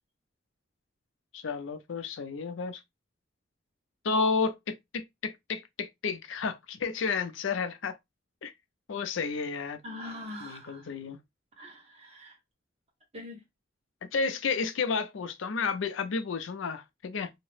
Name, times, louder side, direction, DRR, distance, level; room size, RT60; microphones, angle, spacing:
voice 1, 1.3-2.8 4.0-8.0 8.4-8.5 8.9-9.8 10.4-11.2 14.0-17.3, left 5 dB, 80° left, 0.5 m, -31 dB
voice 2, 9.8-10.9 11.6-12.4 13.1-13.4, left 1 dB, 30° right, 1.0 m, -43 dB
2.7 x 2.0 x 3.1 m
head